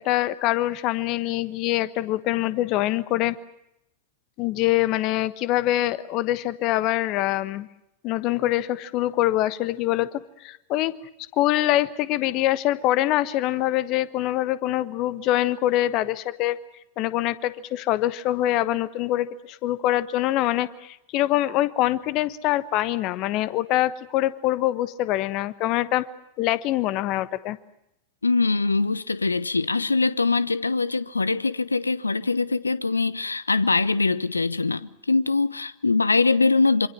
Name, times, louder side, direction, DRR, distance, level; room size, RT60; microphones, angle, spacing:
voice 1, 0.0-3.4 4.4-7.7 8.0-10.1 10.4-10.9 11.4-16.6 17.0-26.0 26.4-27.6, left 15 dB, 40° left, 1.2 m, -24 dB
voice 2, 28.2-36.9, left 3 dB, 80° left, 0.9 m, -23 dB
27.0 x 25.5 x 6.1 m
figure-of-eight pair, 90°, 0 cm